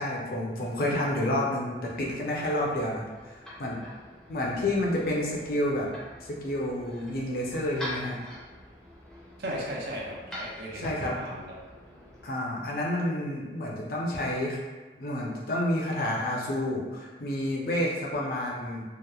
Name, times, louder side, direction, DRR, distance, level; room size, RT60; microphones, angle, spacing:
voice 1, 0.0-3.8 4.3-5.9 6.2-8.2 10.7-11.1 12.2-14.6 15.0-18.8, left 1 dB, 55° left, -3 dB, 0.5 m, -29 dB
sound 1, 1.7-12.3, left 1 dB, 5° left, 0.5 m, -44 dB
voice 2, 9.4-11.6, equal, 60° right, -3 dB, 0.5 m, -36 dB
2.8 x 2.0 x 2.3 m, 1.3 s
head